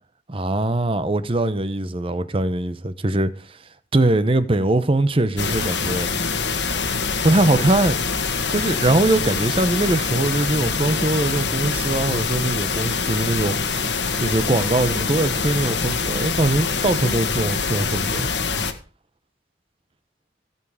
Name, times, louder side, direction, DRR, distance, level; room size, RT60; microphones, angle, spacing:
voice 1, 0.3-3.6 3.9-6.1 7.2-8.0 8.5-13.9 14.2-18.3, right 2 dB, 30° right, 0.8 m, -21 dB
sound 1, 5.4-18.7, left 4 dB, 75° left, 1.5 m, -24 dB
16.0 x 7.3 x 4.9 m
head